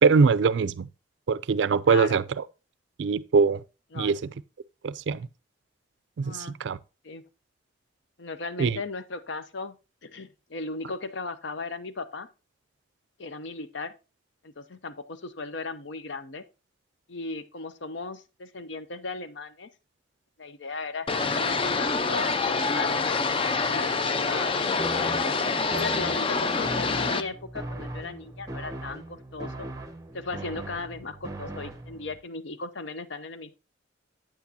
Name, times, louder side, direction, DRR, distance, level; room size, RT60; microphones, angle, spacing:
voice 1, 0.0-0.9 1.3-2.2 3.0-3.6 3.9-4.2 4.8-5.3 6.2-6.8 8.6-8.8, right 5 dB, 65° right, 0.4 m, -22 dB
voice 2, 1.9-2.2 3.9-4.2 6.2-6.6 7.0-7.2 8.2-12.3 13.2-13.9 14.4-16.4 17.1-19.7 20.4-24.6 25.1-25.4 25.7-29.7 30.1-33.5, left 3 dB, 65° left, 0.7 m, -37 dB
sound 1, 21.1-27.2, left 4 dB, 25° left, 0.4 m, -26 dB
sound 2, 24.8-32.2, right 1 dB, 15° right, 0.7 m, -39 dB
8.9 x 8.2 x 2.8 m
head